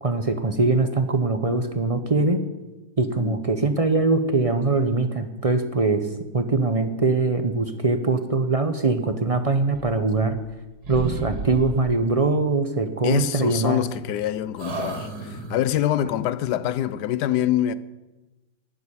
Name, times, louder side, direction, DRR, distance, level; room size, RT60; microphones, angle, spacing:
voice 1, 0.0-2.4 3.0-6.0 6.3-10.4 10.9-13.8, right 3 dB, 35° right, 0.6 m, -22 dB
sound 1, 9.7-10.6 10.8-12.0 13.4-14.2 14.6-15.8, right 2 dB, 70° right, 2.8 m, -34 dB
voice 2, 13.0-17.7, left 11 dB, 85° left, 1.2 m, -25 dB
11.5 x 8.0 x 9.8 m
omnidirectional pair, 1.7 m